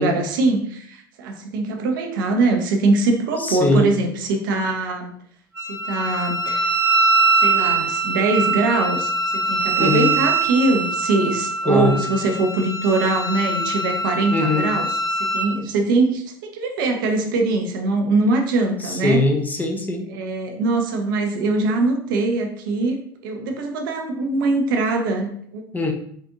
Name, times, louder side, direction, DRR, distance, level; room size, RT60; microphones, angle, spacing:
voice 1, 0.0-5.1 5.7-6.8 7.4-14.9 15.2-19.2 20.1-23.0 23.2-25.6, right 3 dB, 65° right, 3 dB, 0.6 m, -22 dB
voice 2, 3.4-3.9 9.8-10.1 11.7-12.0 14.3-14.7 18.8-20.1 25.7-25.9, left 2 dB, 15° left, 4 dB, 0.5 m, -21 dB
Wind instrument woodwind instrument, 5.6-15.5, right 3 dB, 25° right, 0.9 m, -22 dB
3.7 x 2.5 x 2.6 m, 0.62 s
figure-of-eight pair, 70°, 12 cm